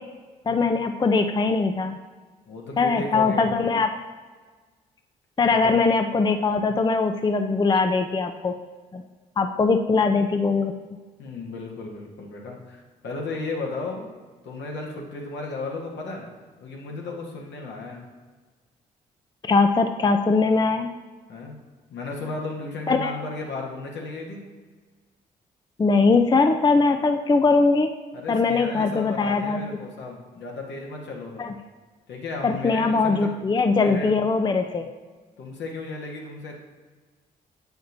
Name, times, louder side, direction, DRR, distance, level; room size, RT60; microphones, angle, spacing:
voice 1, 0.5-2.0 2.8-3.9 5.4-8.6 8.9-9.0 9.4-10.7 19.4-20.9 22.9-23.1 25.8-27.9 28.3-29.6 31.4-31.5 32.4-34.9, left 4 dB, 20° left, 6 dB, 0.5 m, -21 dB
voice 2, 2.4-3.5 5.5-5.8 11.2-14.2 14.4-16.3 16.6-18.1 21.3-21.5 21.9-24.5 28.1-31.5 32.1-33.3 33.8-34.1 35.4-36.6, left 3 dB, 70° left, 0 dB, 1.3 m, -34 dB
7.6 x 5.2 x 2.7 m, 1.4 s
hypercardioid pair, 45°, 19 cm